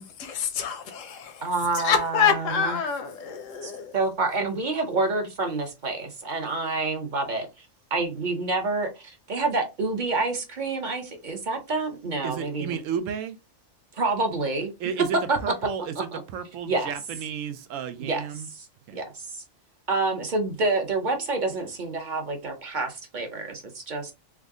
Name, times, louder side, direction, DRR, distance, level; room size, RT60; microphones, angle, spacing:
voice 1, 0.0-1.5 1.7-3.9, left 7 dB, 85° left, 1.1 m, -27 dB
voice 2, 1.4-2.8 3.6-7.5 7.9-12.8 13.9-14.7 15.3-15.4 16.1-16.2 16.7-16.9 18.0-18.2 18.9-19.4 19.9-24.1, right 3 dB, 45° right, 0.8 m, -28 dB
voice 3, 12.2-13.4 14.8-18.5 18.9-19.0, right 7 dB, 90° right, 1.0 m, -32 dB
3.5 x 2.1 x 3.5 m
omnidirectional pair, 1.3 m